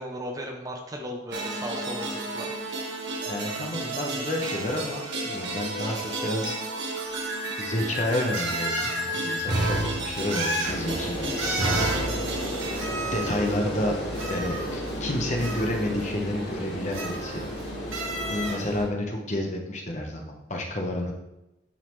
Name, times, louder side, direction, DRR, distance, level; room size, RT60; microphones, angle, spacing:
voice 1, 0.0-2.5, equal, 20° right, 2 dB, 0.6 m, -36 dB
sound 1, 1.3-12.8, right 2 dB, 65° right, 1.4 m, -31 dB
voice 2, 3.3-6.6 7.6-11.6 13.0-14.0 14.3-17.4 18.3-21.1, left 1 dB, 35° left, 1 dB, 1.0 m, -30 dB
sound 2, 7.0-7.1 8.3-9.0 10.3-10.8 11.4-12.0 12.7-13.5 14.1-15.0 15.4-16.0 16.9-17.6 17.9-18.6, right 2 dB, 90° right, 1.9 m, -32 dB
sound 3, 10.6-18.9, equal, 60° left, 2.0 m, -33 dB
11.0 x 3.9 x 3.2 m, 0.93 s
head